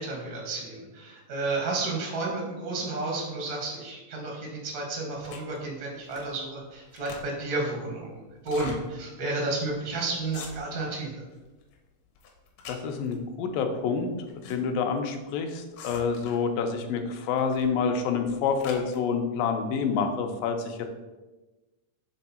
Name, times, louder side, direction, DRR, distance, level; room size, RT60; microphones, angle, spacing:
voice 1, 0.0-11.2, right 2 dB, 80° right, -1 dB, 0.9 m, -32 dB
sound 1, 5.2-5.6 6.1-6.4 6.7-7.5 8.4-8.8 9.3-9.4 9.6-9.9 10.2-10.9 11.3-11.8 12.2-13.2 14.0-14.6 14.8-14.9 15.7-16.5 17.4-17.7 18.1-19.0, left 5 dB, 70° left, 1.7 m, -44 dB
voice 2, 12.7-20.9, left 5 dB, 90° left, 5 dB, 2.4 m, -28 dB
6.6 x 3.5 x 4.2 m, 1.2 s
omnidirectional pair, 3.9 m